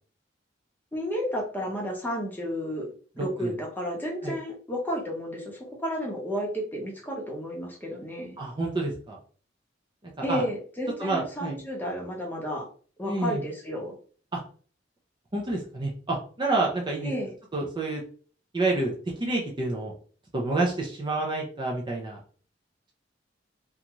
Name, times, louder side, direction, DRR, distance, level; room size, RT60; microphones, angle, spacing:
voice 1, 0.9-8.4 10.2-12.7 13.0-13.9 17.0-17.3, equal, 10° left, -2 dB, 0.8 m, -32 dB
voice 2, 8.4-9.2 10.3-10.4 11.0-11.6 13.1-13.4 14.3-14.4 15.3-17.1 17.5-18.0 18.5-18.9 19.2-19.9 20.3-22.2, right 2 dB, 25° right, -1 dB, 0.5 m, -28 dB
2.5 x 2.3 x 2.9 m, 0.42 s
head